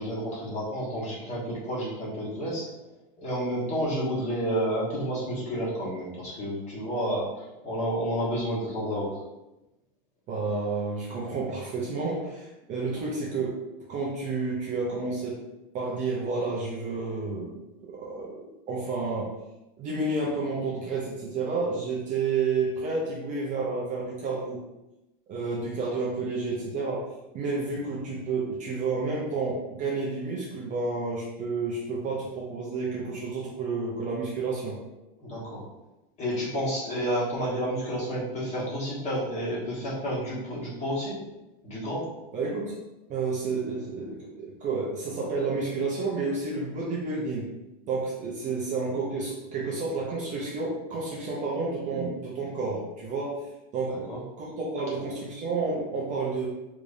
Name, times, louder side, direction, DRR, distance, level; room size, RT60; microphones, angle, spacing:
voice 1, 0.0-2.7 3.2-9.2 35.2-35.7 36.2-41.2 41.6-42.1 53.9-54.2, equal, 25° left, -6 dB, 1.3 m, -30 dB
voice 2, 10.3-13.6 13.9-15.4 15.7-19.3 19.8-24.6 25.3-34.8 42.3-42.7 43.1-47.5 47.9-53.4 53.7-56.5, right 3 dB, 25° right, -4 dB, 0.6 m, -30 dB
3.5 x 3.3 x 2.6 m, 0.97 s
supercardioid pair, 150°, 30 cm